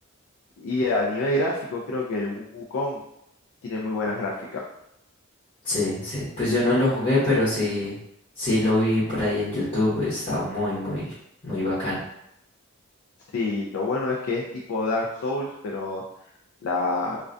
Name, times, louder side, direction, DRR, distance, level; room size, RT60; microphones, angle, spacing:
voice 1, 0.6-3.0 3.6-4.7 13.3-16.0 16.6-17.2, left 2 dB, 80° left, -3 dB, 0.4 m, -27 dB
voice 2, 5.6-8.0 8.4-11.1 11.4-12.0, left 1 dB, 30° left, -12 dB, 0.9 m, -24 dB
2.3 x 2.2 x 2.5 m, 0.78 s
head